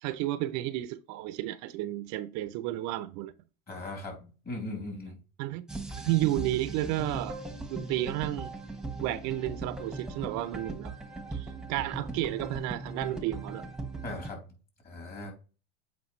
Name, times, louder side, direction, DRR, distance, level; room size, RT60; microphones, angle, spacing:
voice 1, 0.0-3.3 5.4-5.7 6.0-7.4 7.7-8.5 9.0-10.9 11.3-13.7, right 15 dB, 55° right, 0.6 m, -32 dB
voice 2, 3.7-4.2 4.4-5.2 14.0-14.4 14.8-15.3, left 2 dB, 30° left, 3.4 m, -38 dB
sound 1, 5.7-14.3, right 3 dB, ahead, 1.2 m, -39 dB
8.0 x 4.6 x 3.1 m
supercardioid pair, 110°, 33 cm